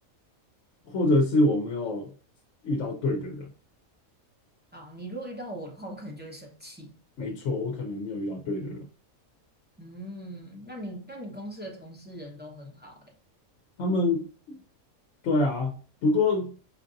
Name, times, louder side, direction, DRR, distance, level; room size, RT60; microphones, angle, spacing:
voice 1, 0.9-2.1 2.6-3.5 7.2-8.9 13.8-14.6 15.2-15.8 16.0-16.6, left 2 dB, 65° left, 2 dB, 0.9 m, -26 dB
voice 2, 4.7-6.9 9.8-13.1, right 1 dB, 10° right, -1 dB, 0.5 m, -40 dB
5.1 x 2.5 x 2.5 m, 0.39 s
omnidirectional pair, 1.4 m